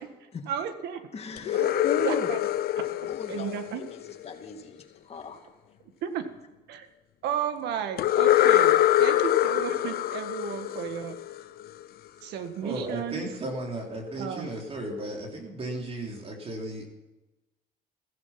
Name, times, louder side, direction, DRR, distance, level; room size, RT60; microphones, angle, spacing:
voice 1, 0.5-1.0 1.5-1.7 2.0-2.4 3.3-3.8 6.0-6.2 6.7-6.9 7.2-11.2 12.2-13.2 14.2-14.5, right 8 dB, 80° right, 8 dB, 1.8 m, -33 dB
voice 2, 1.1-2.3 3.1-4.8 5.1-5.4, left 4 dB, 35° left, 4 dB, 2.5 m, -36 dB
sound 1, 1.4-4.3 8.0-11.7, left 13 dB, 65° left, 0.8 m, -24 dB
voice 3, 12.6-16.9, right 1 dB, 35° right, 0 dB, 3.5 m, -35 dB
15.5 x 15.0 x 5.9 m, 1.1 s
cardioid pair, 110°, 17 cm